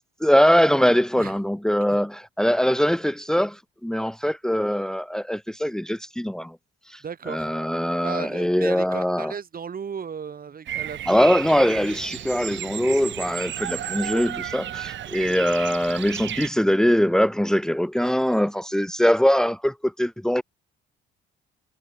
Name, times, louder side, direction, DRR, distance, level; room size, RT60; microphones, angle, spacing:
voice 1, 0.2-6.6 6.9-9.3 11.1-20.4, equal, 5° left, 1.8 m, -22 dB
voice 2, 7.0-7.5 8.0-11.1 12.0-12.1, right 7 dB, 45° right, 6.7 m, -35 dB
Bird vocalization bird call bird song, 10.7-16.5, right 11 dB, 70° right, 1.5 m, -33 dB
cardioid pair, 90°, 20 cm